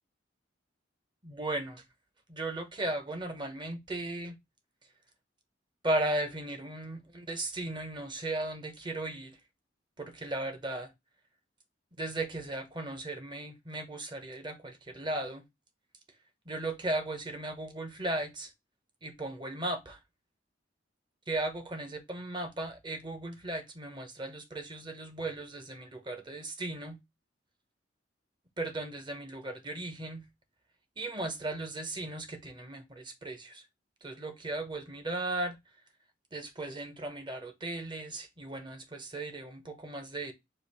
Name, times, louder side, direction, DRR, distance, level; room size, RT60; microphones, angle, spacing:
voice 1, 1.2-1.8 2.3-4.4 5.8-9.4 10.0-10.9 12.0-15.4 16.5-18.5 19.0-20.0 21.3-27.0 28.6-30.2 31.0-33.6 34.0-35.6 36.3-40.3, right 2 dB, 25° right, 0.8 m, -36 dB
5.0 x 2.5 x 4.1 m
head